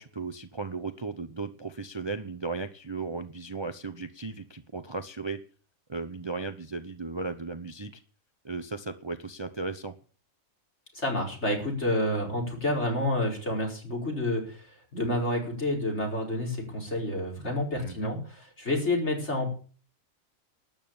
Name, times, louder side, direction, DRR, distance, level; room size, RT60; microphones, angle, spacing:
voice 1, 0.0-5.4 5.9-7.9 8.4-9.9 17.8-18.1, right 3 dB, 25° right, 9 dB, 0.7 m, -36 dB
voice 2, 10.9-19.5, left 1 dB, 55° left, 0 dB, 5.3 m, -29 dB
12.5 x 9.3 x 8.7 m, 0.41 s
omnidirectional pair, 1.4 m